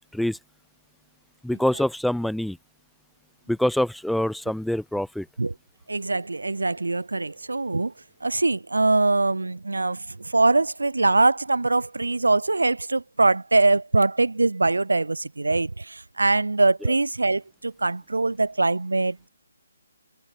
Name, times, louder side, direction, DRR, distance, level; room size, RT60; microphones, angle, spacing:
voice 1, 1.4-2.6 3.5-5.3, left 1 dB, ahead, 1.7 m, -25 dB
voice 2, 5.9-7.9 8.2-19.3, right 3 dB, 85° right, 3.4 m, -23 dB
open air
figure-of-eight pair, 145°, 0 cm